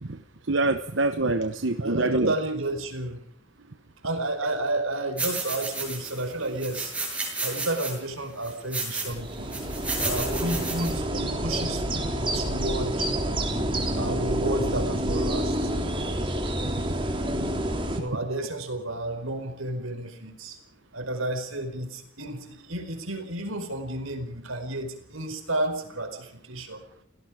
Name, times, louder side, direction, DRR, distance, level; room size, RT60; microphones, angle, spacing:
voice 1, 0.5-2.3 16.4-16.5, right 2 dB, 65° right, 9 dB, 1.0 m, -25 dB
voice 2, 1.8-3.2 4.0-6.9 7.4-9.6 10.0-13.1 14.0-15.7 17.9-20.6 20.9-26.8, right 1 dB, 85° right, 7 dB, 4.8 m, -31 dB
sound 1, 5.2-6.2 6.6-7.9 8.4-9.1 9.5-10.9, right 3 dB, 5° right, 7.6 m, -32 dB
sound 2, 9.0-18.0, right 1 dB, 25° right, 3.5 m, -28 dB
29.5 x 18.0 x 5.1 m, 0.68 s
head